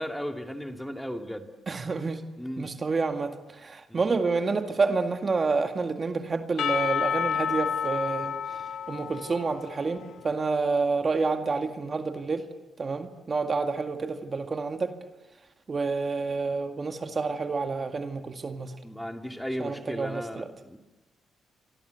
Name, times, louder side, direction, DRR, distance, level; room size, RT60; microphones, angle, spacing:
voice 1, 0.0-1.5 2.4-2.7 3.9-4.0 18.8-20.8, equal, 5° left, 5 dB, 2.4 m, -35 dB
voice 2, 1.7-2.2 2.6-8.4 8.9-12.4 12.8-14.9 15.7-18.7 19.6-20.4, right 4 dB, 35° right, 6 dB, 2.1 m, -28 dB
Percussion / Church bell, 6.6-10.6, left 8 dB, 65° left, 1.6 m, -30 dB
28.5 x 25.0 x 8.2 m, 1.1 s
cardioid pair, 90°, 0 cm